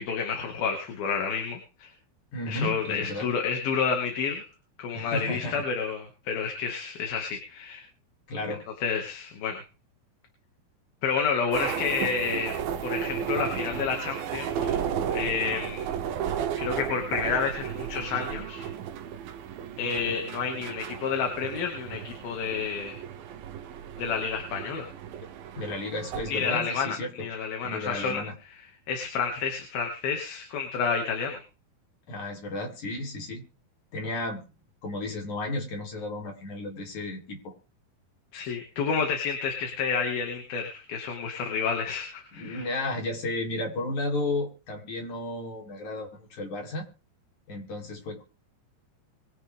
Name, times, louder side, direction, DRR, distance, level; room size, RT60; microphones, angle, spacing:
voice 1, 0.0-1.9 2.5-4.5 4.8-7.8 8.8-9.6 11.0-12.6 12.8-14.8 15.1-15.9 16.6-18.7 19.8-23.0 24.0-24.9 26.3-28.2 28.9-31.4 38.3-42.7, left 6 dB, 90° left, 3 dB, 4.1 m, -30 dB
voice 2, 2.3-3.3 4.9-5.6 8.3-8.6 25.5-27.3 27.6-28.4 32.1-33.4 33.9-34.4 34.8-37.5 42.4-46.9 47.5-48.2, left 2 dB, 55° left, 1 dB, 5.3 m, -33 dB
sound 1, 11.5-26.5, right 8 dB, 85° right, 3.0 m, -34 dB
24.5 x 10.0 x 3.7 m, 0.34 s
omnidirectional pair, 4.1 m